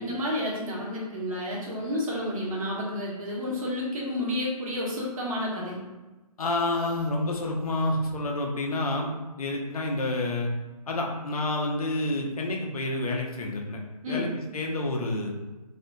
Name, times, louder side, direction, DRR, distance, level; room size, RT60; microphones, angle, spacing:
voice 1, 0.0-5.8 14.0-14.3, left 1 dB, 55° right, -5 dB, 1.3 m, -30 dB
voice 2, 6.4-9.1 9.4-10.5 10.9-13.8 14.1-15.3, left 2 dB, 65° left, 0 dB, 0.7 m, -29 dB
3.2 x 2.7 x 2.7 m, 1.2 s
hypercardioid pair, 150°, 20 cm